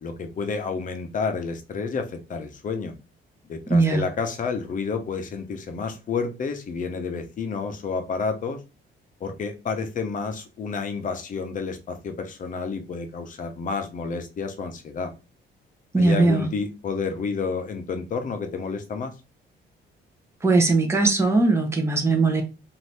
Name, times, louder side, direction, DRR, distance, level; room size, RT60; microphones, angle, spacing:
voice 1, 0.0-2.9 3.5-8.6 9.2-15.1 16.0-19.1, left 5 dB, 40° left, 7 dB, 0.7 m, -30 dB
voice 2, 3.7-4.0 15.9-16.5 20.4-22.4, right 3 dB, 15° right, 3 dB, 0.8 m, -20 dB
2.7 x 2.6 x 3.3 m, 0.29 s
cardioid pair, 110°, 20 cm